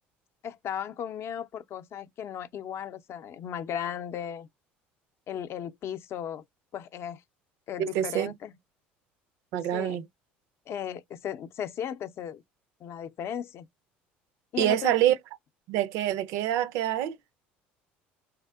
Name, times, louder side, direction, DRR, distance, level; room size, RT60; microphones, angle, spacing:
voice 1, 0.4-4.5 5.3-6.4 6.7-7.2 7.7-8.5 9.7-10.0 10.7-12.4 12.8-13.7 14.5-15.0, left 9 dB, 50° left, 0.5 m, -36 dB
voice 2, 7.8-8.3 9.5-10.0 14.6-15.1 15.7-17.2, right 12 dB, 70° right, 0.4 m, -26 dB
3.5 x 2.7 x 2.3 m
hypercardioid pair, 75°, 5 cm